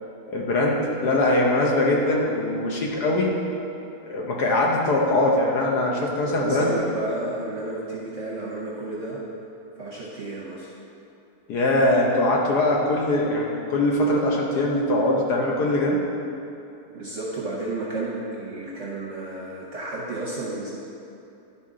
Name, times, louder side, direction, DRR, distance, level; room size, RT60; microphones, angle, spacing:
voice 1, 0.3-3.3 4.0-6.7 11.5-16.0, left 1 dB, 60° left, -2 dB, 1.3 m, -22 dB
voice 2, 6.4-9.5 9.8-10.7 16.9-20.8, right 2 dB, 50° right, -5 dB, 0.9 m, -32 dB
11.0 x 4.3 x 3.7 m, 2.8 s
omnidirectional pair, 2.1 m